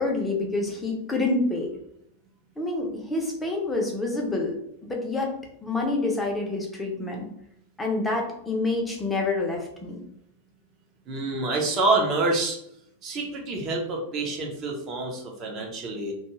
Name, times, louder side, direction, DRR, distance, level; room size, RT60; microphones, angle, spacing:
voice 1, 0.0-1.7 2.6-4.6 4.8-5.3 5.6-7.3 7.8-10.0, left 2 dB, 10° left, -1 dB, 0.7 m, -27 dB
voice 2, 11.1-12.6 13.0-16.1, right 2 dB, 30° right, 1 dB, 0.8 m, -27 dB
2.5 x 2.3 x 3.0 m, 0.75 s
figure-of-eight pair, 90°, 0 cm